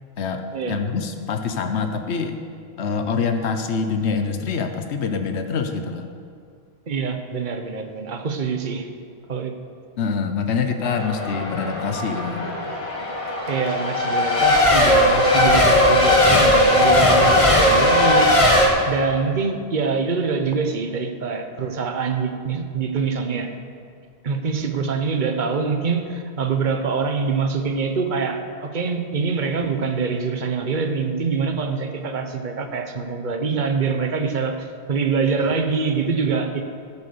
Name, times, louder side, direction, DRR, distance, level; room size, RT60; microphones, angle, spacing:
voice 1, 0.2-2.3 2.8-6.1 10.0-12.5, left 5 dB, 85° left, 6 dB, 1.1 m, -25 dB
voice 2, 6.9-8.9 9.3-9.5 13.5-18.3 18.9-23.5 24.2-36.6, right 5 dB, 50° right, 6 dB, 1.1 m, -25 dB
Race car auto racing / Accelerating revving vroom / Mechanisms, 10.8-18.7, left 1 dB, 30° left, 1.5 m, -18 dB
12.5 x 8.5 x 6.8 m, 2.2 s
omnidirectional pair, 1.1 m